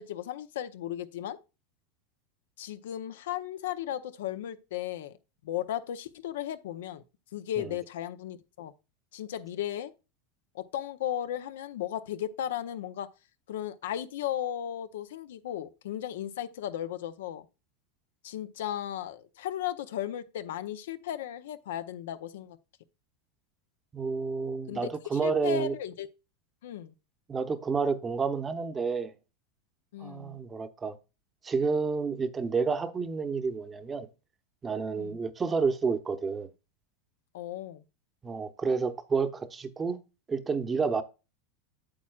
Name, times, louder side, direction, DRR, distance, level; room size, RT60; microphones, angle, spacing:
voice 1, 0.0-1.4 2.6-5.2 5.4-7.0 7.3-8.7 9.1-9.9 10.5-13.1 13.5-17.5 18.2-22.6 24.7-26.1 26.6-26.9 29.9-30.4 35.0-35.2 37.3-37.8, left 11 dB, 80° left, 0.7 m, -35 dB
voice 2, 23.9-25.7 27.3-29.1 30.0-31.0 31.4-34.1 34.6-36.5 38.2-40.0 40.3-41.0, right 5 dB, 20° right, 0.8 m, -30 dB
8.7 x 7.3 x 2.3 m
supercardioid pair, 135°, 0 cm